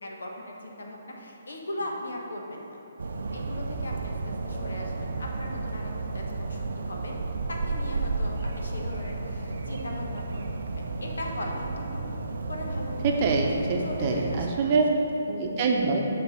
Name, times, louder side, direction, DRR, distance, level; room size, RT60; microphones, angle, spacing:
voice 1, 0.0-2.8 3.3-7.2 7.5-10.5 10.7-12.0 12.5-13.1 13.8-14.7, left 1 dB, 85° left, 0 dB, 1.1 m, -39 dB
sound 1, 3.0-14.5, right 3 dB, 70° right, 0.5 m, -32 dB
voice 2, 13.0-14.9 15.3-16.0, right 4 dB, 40° right, 1 dB, 0.8 m, -25 dB
7.2 x 3.4 x 6.3 m, 2.9 s
hypercardioid pair, 145°, 0 cm